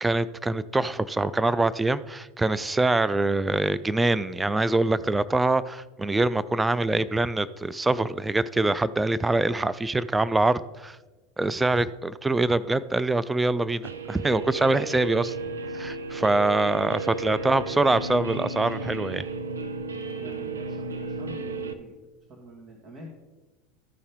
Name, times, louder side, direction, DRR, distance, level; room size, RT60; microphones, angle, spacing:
voice 1, 0.0-11.0 11.4-15.3 15.7-19.3, right 2 dB, 10° right, 15 dB, 0.3 m, -24 dB
Guitar, 13.8-21.7, right 3 dB, 80° right, 0.5 m, -34 dB
voice 2, 20.2-21.9 22.3-23.1, right 1 dB, 40° right, -1 dB, 1.7 m, -46 dB
14.0 x 5.5 x 3.6 m, 1.2 s
figure-of-eight pair, 80°, 0 cm